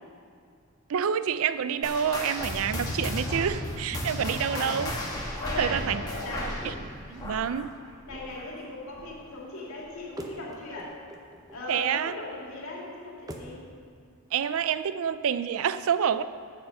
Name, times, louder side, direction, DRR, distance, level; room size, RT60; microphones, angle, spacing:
voice 1, 0.9-4.9 5.6-6.0 6.4-7.7 11.7-12.2 14.3-16.2, right 8 dB, 70° right, 14 dB, 0.4 m, -28 dB
sound 1, 1.8-8.7 9.0-9.3 9.9-10.0 10.7-10.8, left 1 dB, 15° left, 1.2 m, -34 dB
voice 2, 4.3-4.8 5.4-6.6 8.1-10.9 11.5-13.6, left 2 dB, 70° left, -3 dB, 2.3 m, -38 dB
sound 2, 7.6-13.6, right 1 dB, 15° right, 0.6 m, -48 dB
7.9 x 6.9 x 6.6 m, 2.4 s
head